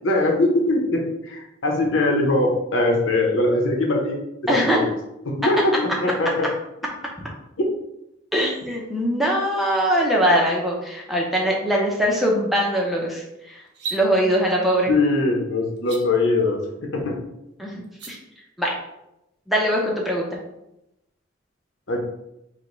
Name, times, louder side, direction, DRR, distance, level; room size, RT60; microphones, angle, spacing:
voice 1, 0.0-4.2 4.5-4.9 5.2-6.5 7.6-7.7 14.9-17.2 21.9-22.0, left 2 dB, 85° left, 1 dB, 0.9 m, -21 dB
voice 2, 4.5-4.8 8.3-13.6 13.9-14.9 17.6-17.8 18.1-18.2 18.6-18.7 19.5-20.3, equal, ahead, -3 dB, 0.7 m, -21 dB
sound 1, 13.7-14.0 15.8-16.0 17.8-18.1, right 4 dB, 55° right, 0.7 m, -32 dB
5.0 x 2.2 x 3.9 m, 0.87 s
head